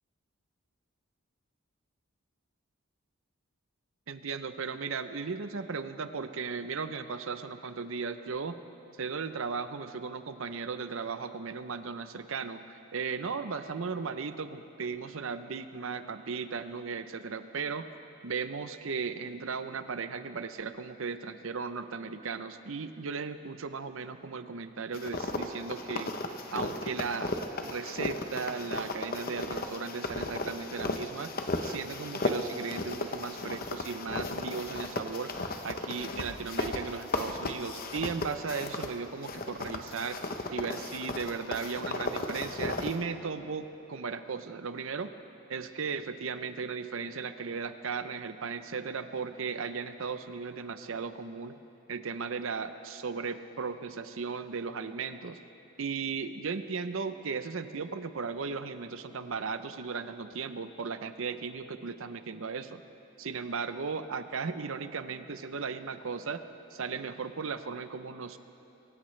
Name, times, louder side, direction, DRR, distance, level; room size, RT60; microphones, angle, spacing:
voice 1, 4.1-8.6 9.0-17.9 18.2-26.1 26.5-27.3 27.6-31.3 31.6-35.3 35.6-40.2 40.5-45.1 45.5-51.6 51.9-55.4 55.8-62.8 63.2-66.4 66.7-68.4, right 5 dB, 65° right, 10 dB, 0.6 m, -36 dB
sound 1, 24.9-38.9 39.2-43.0, left 2 dB, 40° left, 0.8 m, -35 dB
23.5 x 16.5 x 3.3 m, 3.0 s
head